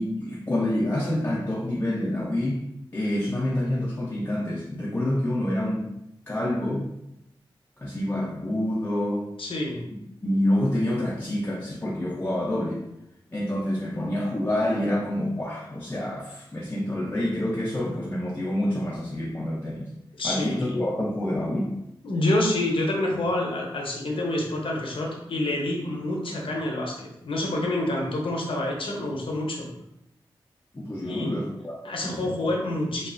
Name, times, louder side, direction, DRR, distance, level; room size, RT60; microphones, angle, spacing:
voice 1, 0.0-2.7 2.9-5.9 6.3-6.9 7.8-9.3 10.2-12.8 13.3-19.9 20.2-21.7 30.7-32.2, left 1 dB, 25° left, -5 dB, 0.5 m, -27 dB
voice 2, 9.4-9.8 20.2-20.7 22.0-29.7 31.0-31.3 31.8-33.1, left 1 dB, 70° left, -1 dB, 0.7 m, -27 dB
2.9 x 2.3 x 2.5 m, 0.82 s
cardioid pair, 60°, 9 cm